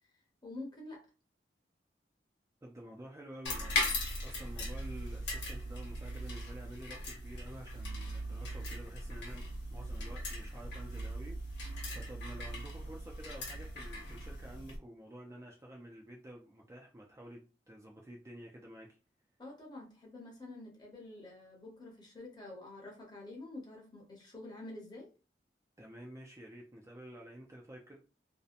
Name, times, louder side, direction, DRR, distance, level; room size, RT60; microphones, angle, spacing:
voice 1, 0.4-1.0 19.4-25.1, left 2 dB, 25° left, 0.8 m, -48 dB
voice 2, 2.6-3.9 4.2-9.4 9.7-11.4 11.6-18.9 25.8-28.0, right 1 dB, 15° right, 0.3 m, -50 dB
sound 1, 3.4-14.8, left 1 dB, 85° left, 1.0 m, -39 dB
2.7 x 2.1 x 2.5 m
head